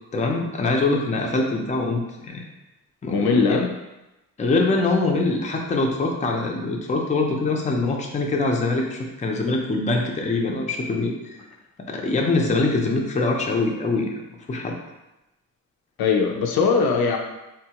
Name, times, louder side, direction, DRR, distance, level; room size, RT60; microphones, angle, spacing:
voice 1, 0.1-2.4 3.0-3.6 4.4-11.4 11.9-14.1 14.5-14.7, left 3 dB, 20° left, 1 dB, 0.4 m, -23 dB
voice 2, 3.1-3.7 16.0-17.2, left 5 dB, 85° left, 3 dB, 0.5 m, -20 dB
3.5 x 2.3 x 2.8 m, 0.98 s
wide cardioid pair, 120°, 35 cm